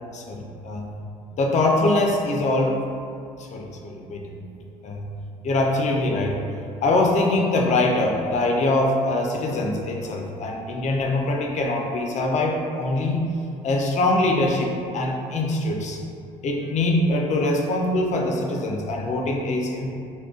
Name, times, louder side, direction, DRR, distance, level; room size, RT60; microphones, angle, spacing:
voice 1, 0.1-0.9 1.4-2.8 3.4-4.5 4.8-5.1 5.4-6.4 6.8-13.2 13.6-16.0 16.4-19.9, left 2 dB, 50° left, 1 dB, 0.5 m, -23 dB
2.3 x 2.2 x 3.6 m, 2.5 s
supercardioid pair, 65°, 16 cm